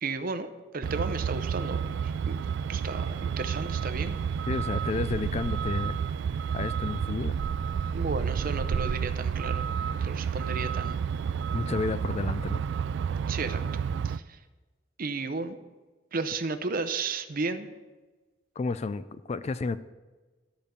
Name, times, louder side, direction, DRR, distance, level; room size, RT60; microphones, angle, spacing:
voice 1, 0.0-2.3 2.7-4.2 7.9-11.1 13.3-13.6 14.0-14.4 15.0-15.6 16.1-17.7, right 3 dB, 50° right, 10 dB, 0.7 m, -33 dB
Truck, 0.8-14.2, right 7 dB, 65° right, 0.3 m, -30 dB
voice 2, 4.5-6.0 6.5-7.4 11.5-12.6 18.6-19.8, left 3 dB, 35° left, 14 dB, 0.3 m, -31 dB
13.0 x 5.2 x 6.8 m, 1.2 s
head